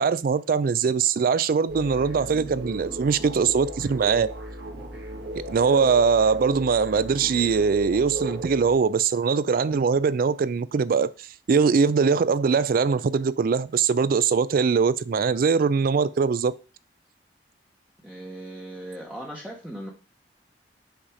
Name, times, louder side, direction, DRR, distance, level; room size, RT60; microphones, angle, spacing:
voice 1, 0.0-4.3 5.3-11.1 11.5-16.5, right 5 dB, 55° right, 0.4 m, -22 dB
sound 1, 1.7-8.8, right 1 dB, 90° right, 1.8 m, -35 dB
voice 2, 18.0-19.9, right 1 dB, 5° right, 0.9 m, -38 dB
5.9 x 4.1 x 4.9 m
head